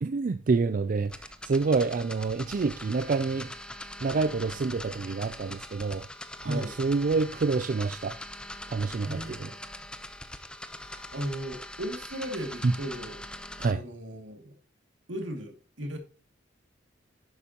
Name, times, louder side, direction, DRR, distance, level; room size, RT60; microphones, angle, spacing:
voice 1, 0.0-3.5 4.0-6.1 6.5-8.2 8.7-9.5 12.6-12.7 13.6-13.8, right 4 dB, 45° right, 0.4 m, -27 dB
sound 1, 1.0-13.7, left 1 dB, 5° left, 0.7 m, -42 dB
voice 2, 6.4-6.8 9.0-9.6 10.8-14.5 15.1-16.0, right 1 dB, 80° right, 2.4 m, -37 dB
11.0 x 8.2 x 2.9 m
head